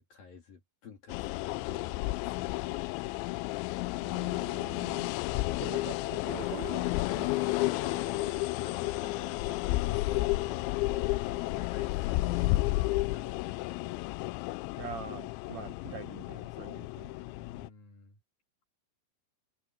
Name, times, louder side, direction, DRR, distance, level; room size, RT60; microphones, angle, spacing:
voice 1, 0.0-2.6 7.4-8.1 8.6-13.6 17.3-18.2, left 6 dB, 50° left, 4.6 m, -49 dB
sound 1, 1.1-17.7, left 20 dB, 85° left, 2.8 m, -32 dB
voice 2, 4.0-5.1 5.6-7.3 14.8-17.2, right 8 dB, 80° right, 1.6 m, -44 dB
sound 2, 5.1-8.4, right 6 dB, 50° right, 5.9 m, -52 dB
open air
omnidirectional pair, 5.5 m